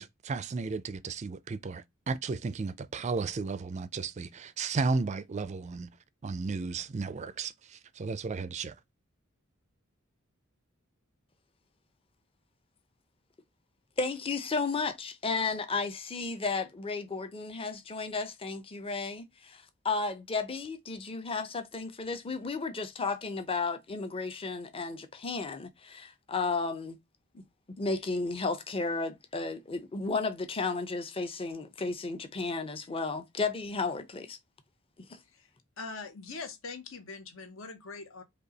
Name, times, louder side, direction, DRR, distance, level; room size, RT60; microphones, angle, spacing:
voice 1, 0.0-5.9 6.2-8.7, right 4 dB, 35° right, 0.4 m, -34 dB
voice 2, 14.0-27.0 27.8-34.4 35.0-35.2, left 4 dB, 25° left, 0.6 m, -33 dB
voice 3, 35.8-38.2, left 4 dB, 70° left, 1.0 m, -42 dB
5.3 x 2.3 x 3.9 m
head